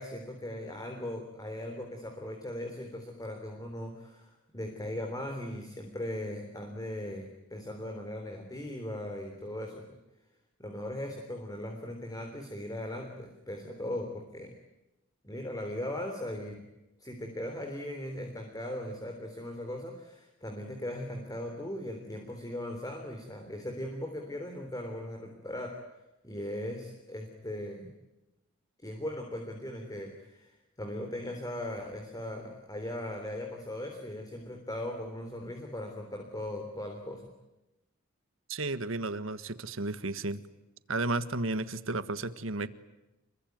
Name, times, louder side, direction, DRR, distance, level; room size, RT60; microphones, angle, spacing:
voice 1, 0.0-9.9 10.6-14.5 15.2-16.7 17.0-25.8 26.2-27.9 28.8-37.2, left 1 dB, 20° left, 4 dB, 3.6 m, -38 dB
voice 2, 38.5-40.4 40.9-42.7, right 2 dB, 85° right, 13 dB, 1.6 m, -33 dB
28.0 x 23.0 x 9.5 m, 0.98 s
head